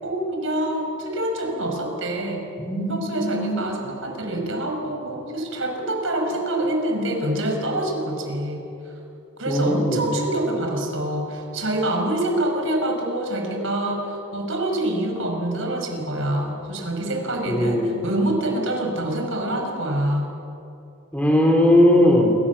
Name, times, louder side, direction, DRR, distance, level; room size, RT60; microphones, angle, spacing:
voice 1, 0.0-2.5 2.9-8.9 9.4-20.3, right 1 dB, 65° right, 2 dB, 5.5 m, -26 dB
voice 2, 2.6-3.6 9.5-10.1 17.4-17.9 21.1-22.3, left 1 dB, 5° left, 1 dB, 3.4 m, -19 dB
28.0 x 24.0 x 7.2 m, 2.7 s
head